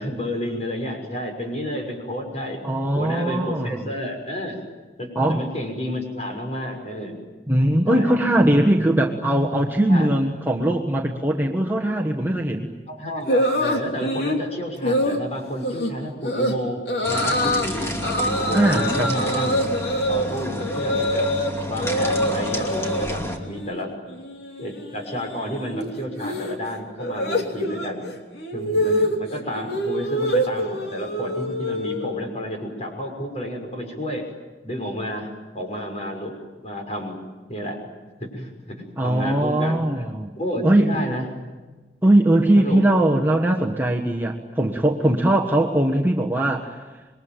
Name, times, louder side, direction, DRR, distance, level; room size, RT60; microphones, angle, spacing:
voice 1, 0.0-2.6 2.9-4.6 5.0-7.2 7.8-8.1 9.9-10.1 12.9-16.8 17.1-18.0 18.3-19.6 20.1-21.3 21.7-23.9 24.6-28.1 28.5-34.3 34.6-37.2 37.5-37.8 38.2-41.3 42.5-42.8, equal, 35° left, 2 dB, 6.3 m, -31 dB
voice 2, 2.6-3.9 5.1-5.4 7.5-12.7 18.5-19.1 39.0-40.3 40.6-41.0 42.0-46.8, right 1 dB, 10° right, 0 dB, 1.5 m, -20 dB
sound 1, 13.3-14.4 14.8-15.2 15.6-15.9 16.2-16.5 16.9-17.7 18.0-21.5 21.8-23.1 23.4-23.8 24.1-32.3, equal, 65° left, 3.2 m, -25 dB
sound 2, 17.0-23.4, left 1 dB, 15° left, 2.6 m, -30 dB
27.0 x 23.0 x 9.1 m, 1.2 s
head